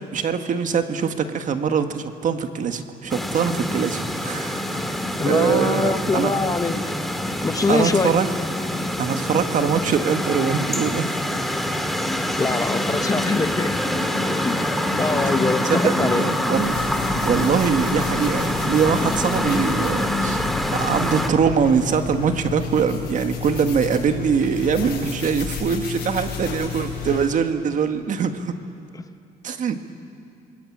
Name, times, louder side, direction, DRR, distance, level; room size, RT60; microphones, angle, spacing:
voice 1, 0.1-6.3 7.7-8.3 9.0-11.3 15.2-15.4 15.7-16.8 17.2-28.5 29.4-29.8, right 6 dB, 50° right, 7 dB, 1.7 m, -23 dB
sound 1, 3.1-21.3, left 1 dB, ahead, 1.9 m, -25 dB
voice 2, 5.2-6.9 7.4-8.1 12.4-13.7 14.3-16.2, left 3 dB, 20° left, 9 dB, 1.1 m, -24 dB
sound 2, 16.6-27.3, left 7 dB, 70° left, 6.9 m, -32 dB
27.5 x 21.0 x 8.8 m, 2.5 s
cardioid pair, 110°, 17 cm